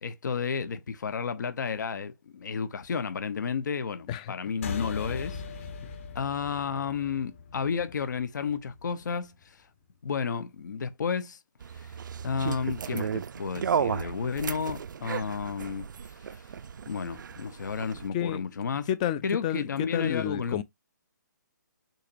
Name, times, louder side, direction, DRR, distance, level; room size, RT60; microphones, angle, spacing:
voice 1, 0.0-5.7 6.1-9.7 10.0-11.4 11.7-12.0 12.2-16.5 16.9-18.9 19.2-20.6, left 6 dB, 65° left, 0.7 m, -32 dB
sound 1, 4.6-9.4, left 5 dB, 40° left, 1.1 m, -40 dB
Bird and bees, 11.6-18.1, right 7 dB, 75° right, 0.4 m, -34 dB
voice 2, 18.1-18.5 18.9-20.6, left 11 dB, 20° left, 0.3 m, -30 dB
6.4 x 2.9 x 2.4 m
hypercardioid pair, 155°, 10 cm